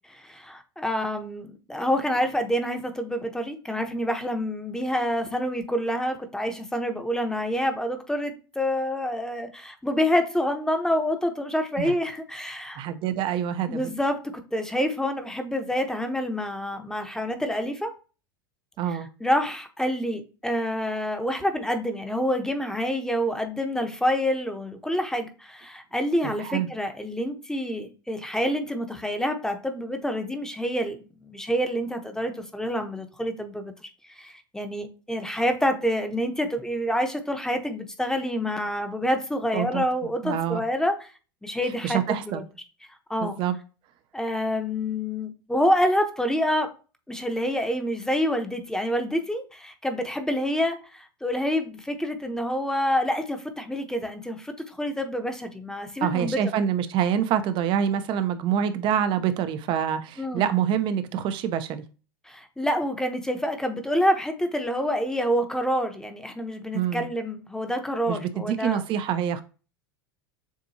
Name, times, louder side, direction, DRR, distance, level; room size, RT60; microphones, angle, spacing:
voice 1, 0.1-12.8 13.7-17.9 19.2-41.1 41.4-42.4 43.1-43.4 44.1-46.7 47.1-56.5 60.2-60.5 62.2-68.8, equal, 5° left, 0.9 m, -27 dB
voice 2, 12.8-13.9 18.8-19.1 26.4-26.7 39.5-40.6 41.8-42.4 43.2-43.6 56.0-61.8 66.7-67.1 68.1-69.4, right 9 dB, 45° right, 0.7 m, -26 dB
7.2 x 2.6 x 2.8 m
hypercardioid pair, 85°, 12 cm